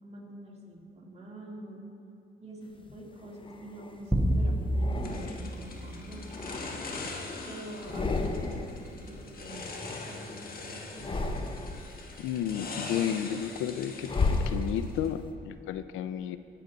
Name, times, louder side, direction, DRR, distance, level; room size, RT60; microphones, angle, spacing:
voice 1, 0.0-1.8 2.4-6.6 7.5-11.7, right 1 dB, 35° right, -3 dB, 2.7 m, -45 dB
sound 1, 2.8-4.1 4.7-5.7 6.2-7.4 7.7-8.8 9.1-10.5 10.9-11.9 12.4-15.1, left 3 dB, 25° left, 0.8 m, -34 dB
sound 2, 4.1-6.7, right 1 dB, 5° right, 1.0 m, -30 dB
sound 3, 5.0-15.1, left 3 dB, 50° left, 1.4 m, -42 dB
voice 2, 12.2-16.4, left 9 dB, 90° left, 13 dB, 0.5 m, -32 dB
18.5 x 6.8 x 3.9 m, 2.8 s
cardioid pair, 90°, 20 cm